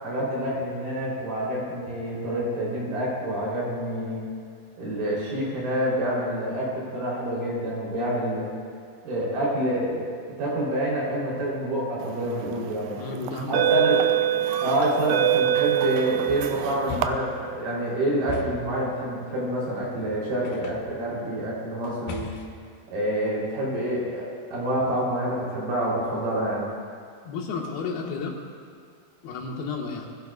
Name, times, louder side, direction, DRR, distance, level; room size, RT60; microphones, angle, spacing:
voice 1, 0.0-4.3 4.8-8.5 9.0-10.0 10.4-13.0 13.5-14.0 14.6-22.3 22.9-26.7, right 1 dB, 70° right, -5 dB, 5.2 m, -27 dB
sound 1, 12.3-12.5 13.3-17.1, right 12 dB, 85° right, 2.0 m, -24 dB
voice 2, 13.0-13.7 27.2-28.4 29.2-30.1, left 4 dB, 90° left, 0 dB, 3.4 m, -32 dB
sound 2, 16.3-17.5 18.3-18.8 20.5-21.0 22.1-22.7, left 5 dB, 75° left, 2.3 m, -37 dB
21.0 x 16.0 x 2.4 m, 2.1 s
omnidirectional pair, 4.3 m